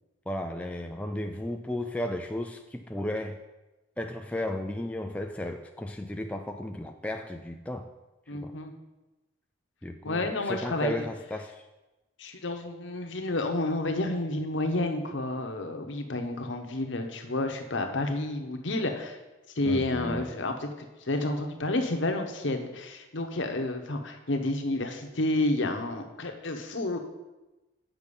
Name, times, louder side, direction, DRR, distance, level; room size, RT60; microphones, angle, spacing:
voice 1, 0.3-3.4 4.0-7.9 8.3-8.5 9.8-11.6 19.7-20.3, left 1 dB, 5° left, 4 dB, 0.3 m, -34 dB
voice 2, 8.3-8.7 10.0-11.1 12.2-19.2 19.6-20.7 21.0-27.0, left 2 dB, 65° left, 5 dB, 1.0 m, -30 dB
8.4 x 5.9 x 5.3 m, 1.1 s
head